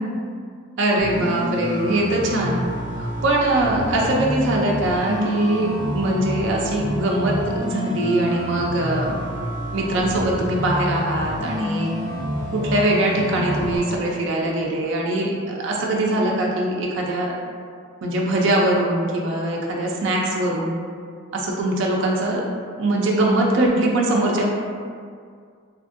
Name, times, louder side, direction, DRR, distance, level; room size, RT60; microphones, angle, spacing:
voice 1, 0.8-2.6 3.0-9.2 9.7-11.9 12.5-17.3 18.0-20.8 21.3-22.4 22.8-24.5, right 1 dB, 60° right, -2 dB, 0.4 m, -22 dB
sound 1, 1.0-13.8, equal, 50° left, 0.9 m, -28 dB
2.8 x 2.5 x 2.4 m, 2.1 s
head